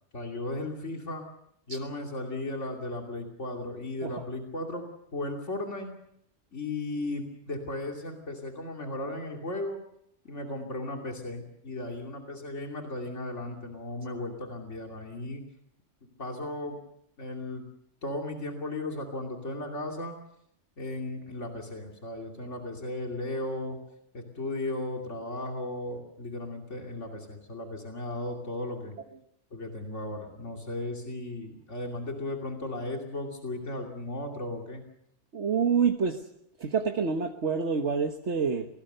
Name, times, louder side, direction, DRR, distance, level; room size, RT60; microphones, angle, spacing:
voice 1, 0.1-1.2 1.7-5.9 6.5-9.8 10.2-15.4 16.2-16.8 17.2-17.6 18.0-20.2 20.8-23.8 24.1-29.0 29.5-34.8, left 2 dB, 85° left, 1 dB, 3.1 m, -36 dB
voice 2, 35.3-36.2 36.6-38.7, right 6 dB, 70° right, 4 dB, 1.6 m, -27 dB
27.0 x 19.5 x 6.7 m, 0.75 s
omnidirectional pair, 1.2 m